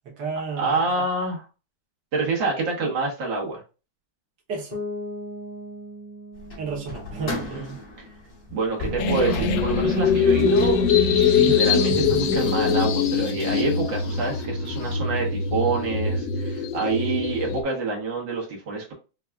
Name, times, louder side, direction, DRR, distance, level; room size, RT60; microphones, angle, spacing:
voice 1, 0.0-1.0 4.5-4.8 6.6-7.7, right 4 dB, 70° right, 1.6 m, -32 dB
voice 2, 0.6-1.4 2.1-3.6 7.1-7.8 8.5-10.8 11.1-18.9, right 3 dB, 90° right, 1.9 m, -27 dB
Bass guitar, 4.7-8.6, left 1 dB, 35° left, 1.1 m, -38 dB
sound 1, 6.4-12.7, left 2 dB, 60° left, 2.0 m, -35 dB
sound 2, 9.0-17.6, left 5 dB, 85° left, 1.3 m, -22 dB
5.6 x 2.3 x 2.3 m
omnidirectional pair, 2.0 m